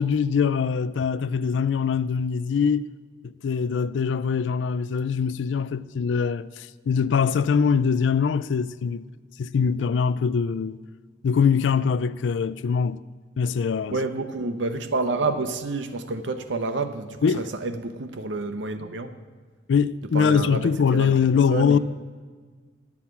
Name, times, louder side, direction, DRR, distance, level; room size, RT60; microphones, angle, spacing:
voice 1, 0.0-2.9 3.2-9.1 9.4-10.8 11.2-13.0 13.4-14.0 17.2-17.5 19.7-21.8, left 6 dB, 75° left, 0.4 m, -23 dB
voice 2, 13.9-19.1 20.1-21.1 21.5-21.8, right 3 dB, 75° right, 0.8 m, -29 dB
11.0 x 7.3 x 5.9 m
head